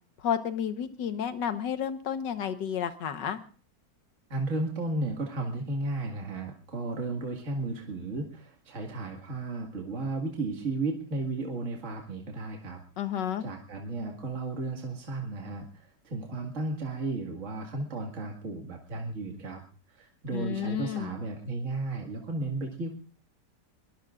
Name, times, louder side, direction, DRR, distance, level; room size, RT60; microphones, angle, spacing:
voice 1, 0.2-3.4 13.0-13.4 20.3-21.1, left 8 dB, 80° left, 10 dB, 1.8 m, -31 dB
voice 2, 4.3-12.8 13.4-19.6 19.9-23.0, right 2 dB, 45° right, 1 dB, 2.3 m, -34 dB
22.5 x 19.5 x 2.5 m, 0.40 s
omnidirectional pair, 1.9 m